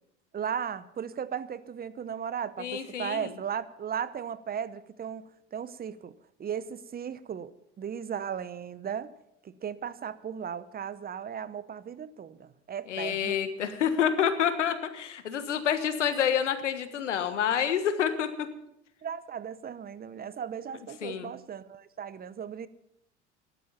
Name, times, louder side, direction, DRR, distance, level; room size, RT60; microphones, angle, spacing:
voice 1, 0.3-6.1 6.4-7.5 7.8-9.1 9.4-13.4 19.0-22.7, right 8 dB, 25° right, 16 dB, 0.9 m, -36 dB
voice 2, 2.6-3.3 12.9-18.5 21.0-21.3, left 8 dB, 85° left, 10 dB, 1.4 m, -28 dB
14.5 x 12.0 x 5.7 m, 0.80 s
hypercardioid pair, 75°, 35 cm